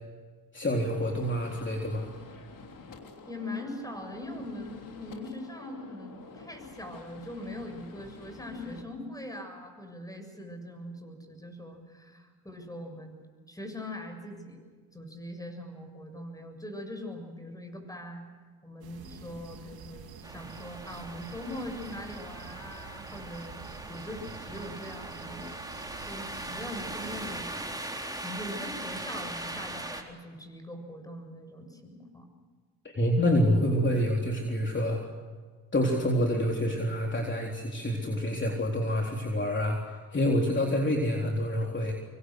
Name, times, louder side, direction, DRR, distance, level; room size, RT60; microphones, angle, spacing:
voice 1, 0.5-2.1 32.8-35.0 35.7-41.9, equal, 30° left, 0 dB, 3.8 m, -27 dB
Gunshot gunfire, 0.9-8.8, left 4 dB, 60° left, 3.3 m, -49 dB
voice 2, 3.3-13.2 13.5-14.6 14.9-18.3 18.6-25.5 26.1-27.7 28.2-32.3, left 1 dB, 10° left, 5 dB, 7.1 m, -41 dB
sound 1, 18.8-27.4, right 6 dB, 85° right, 3.3 m, -48 dB
sound 2, 20.2-30.0, right 2 dB, 10° right, 3.9 m, -40 dB
26.5 x 23.5 x 6.6 m, 1.5 s
cardioid pair, 75°, 36 cm